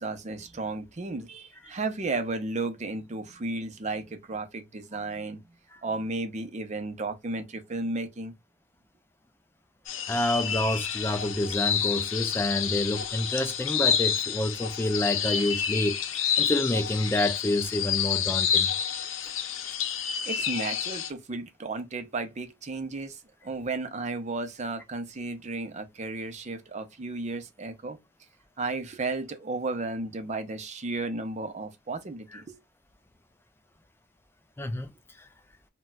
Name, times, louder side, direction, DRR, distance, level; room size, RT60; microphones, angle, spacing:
voice 1, 0.0-5.6 5.8-8.3 20.2-28.0 28.6-32.6, right 3 dB, 35° right, 0.5 m, -34 dB
sound 1, 9.9-21.1, left 8 dB, 75° left, 0.6 m, -29 dB
voice 2, 10.1-18.7 32.3-32.4 34.6-34.9 35.2-35.3, left 1 dB, 10° left, 0.3 m, -28 dB
4.0 x 2.2 x 2.2 m
head